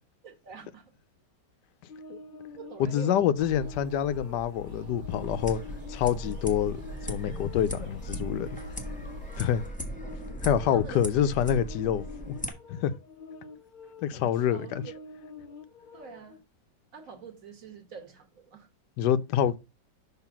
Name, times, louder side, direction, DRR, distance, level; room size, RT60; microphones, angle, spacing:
voice 1, 0.2-0.9 2.6-3.5 7.5-8.1 10.6-11.1 14.1-14.9 15.9-16.4 16.9-18.7, right 6 dB, 55° right, 1.7 m, -46 dB
sound 1, 1.9-16.4, left 3 dB, 40° left, 0.8 m, -48 dB
voice 2, 2.8-5.6 5.9-6.8 7.1-8.5 9.4-9.6 10.4-12.4 12.7-12.9 14.0-14.8 19.0-19.6, left 9 dB, 85° left, 1.2 m, -26 dB
sound 2, 3.4-9.7, left 2 dB, 80° right, 1.9 m, -45 dB
sound 3, 5.1-12.5, equal, 5° left, 1.0 m, -38 dB
5.8 x 3.8 x 5.9 m
omnidirectional pair, 1.8 m